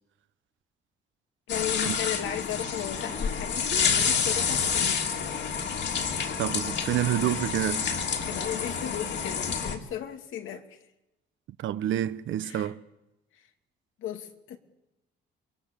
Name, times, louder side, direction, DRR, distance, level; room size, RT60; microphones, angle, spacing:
voice 1, 1.5-5.1 8.3-10.8 12.4-12.7 13.3-13.4 14.0-14.6, left 10 dB, 85° left, 2.7 m, -35 dB
sound 1, 1.5-9.8, left 6 dB, 60° left, 3.3 m, -28 dB
voice 2, 6.4-8.0 11.6-12.8, right 12 dB, 80° right, 1.2 m, -28 dB
28.0 x 23.5 x 7.1 m
cardioid pair, 90°, 20 cm